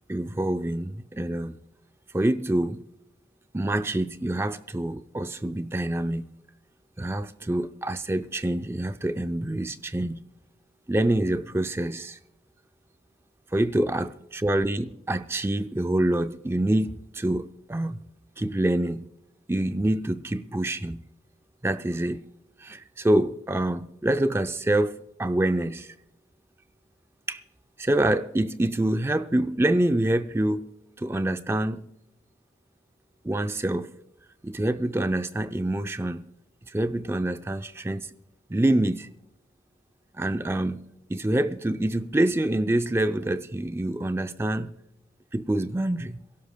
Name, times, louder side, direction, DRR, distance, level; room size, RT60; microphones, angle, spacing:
voice 1, 0.1-1.5 2.1-2.8 3.5-6.3 7.0-10.2 10.9-12.2 13.5-18.0 18.4-19.0 19.5-21.0 21.6-22.2 22.6-25.9 27.3-27.4 27.8-30.7 31.0-31.9 33.2-33.9 34.4-36.2 36.7-38.1 38.5-39.1 40.1-40.8 41.1-44.8 45.3-46.2, right 1 dB, 15° right, 0.4 m, -26 dB
23.5 x 16.5 x 2.2 m
head